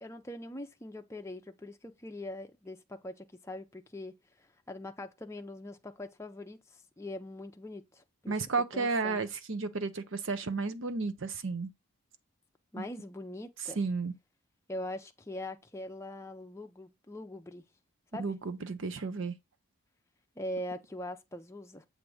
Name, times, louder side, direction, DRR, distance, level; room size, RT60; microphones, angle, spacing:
voice 1, 0.0-8.3 8.7-9.2 12.7-13.8 14.7-17.6 18.1-18.2 20.4-21.9, left 1 dB, 15° left, 0.5 m, -42 dB
voice 2, 8.3-11.7 12.8-12.9 13.8-14.1 18.2-19.3, right 4 dB, 60° right, 0.7 m, -33 dB
7.3 x 2.7 x 4.8 m
head